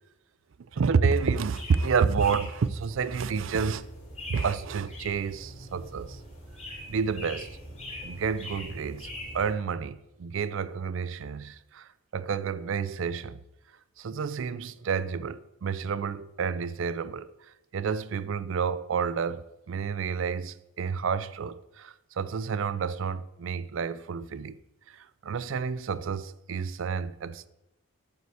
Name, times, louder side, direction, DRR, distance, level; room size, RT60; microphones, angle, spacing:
voice 1, 0.7-3.8 4.3-6.2 6.9-7.6 8.0-13.4 14.0-17.3 17.7-24.6 24.9-27.5, right 5 dB, 65° right, 0.4 m, -30 dB
sound 1, 1.5-9.5, left 1 dB, 30° left, 2.9 m, -42 dB
7.7 x 5.6 x 6.4 m
head